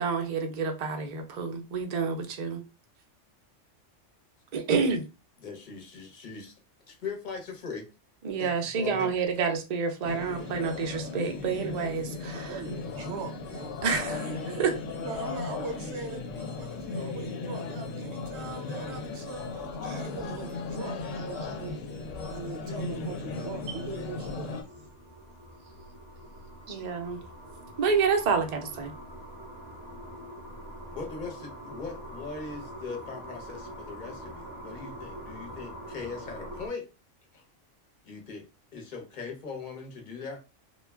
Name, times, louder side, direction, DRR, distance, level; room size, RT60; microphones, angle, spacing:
voice 1, 0.0-2.6 4.5-5.0 8.2-12.6 13.8-14.3 14.6-14.7 26.7-27.2 27.8-28.9, right 5 dB, 50° right, 0.5 m, -28 dB
voice 2, 5.4-6.5 6.9-7.9 8.4-9.1 30.9-36.9 37.3-37.4 38.0-38.5 38.7-40.4, left 4 dB, 45° left, 0.8 m, -40 dB
sound 1, 10.0-24.6, left 3 dB, 80° left, 0.9 m, -36 dB
voice 3, 12.3-14.1 14.4-14.6 15.0-21.8 22.3-24.9 25.6-25.7 26.7-26.9, right 4 dB, 65° right, 0.9 m, -41 dB
sound 2, 22.8-36.7, equal, 20° left, 1.0 m, -44 dB
2.3 x 2.2 x 3.3 m
omnidirectional pair, 1.3 m